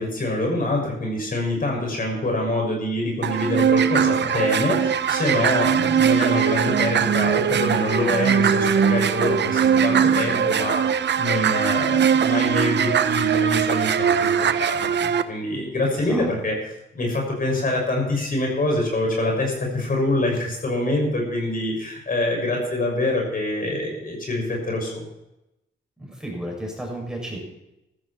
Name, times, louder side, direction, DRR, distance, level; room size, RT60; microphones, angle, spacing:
voice 1, 0.0-14.3 14.6-16.6 16.9-25.1, left 1 dB, 45° left, 0 dB, 6.3 m, -25 dB
sound 1, 3.2-15.2, right 7 dB, 60° right, 0.9 m, -21 dB
voice 2, 15.9-16.2 26.0-27.4, right 1 dB, 5° right, -1 dB, 6.8 m, -33 dB
15.5 x 13.5 x 4.4 m, 0.90 s
cardioid pair, 70°, 20 cm